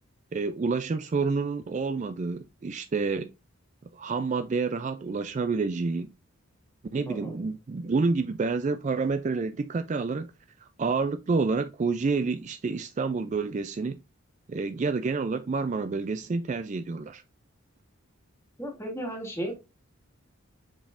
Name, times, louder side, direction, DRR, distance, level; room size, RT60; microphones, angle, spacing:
voice 1, 0.3-3.3 3.9-6.1 6.9-10.3 10.6-14.0 14.5-17.2, right 4 dB, 35° right, 0.3 m, -28 dB
voice 2, 7.1-7.5 18.6-19.5, equal, 10° left, 1.9 m, -35 dB
7.4 x 5.2 x 2.5 m
head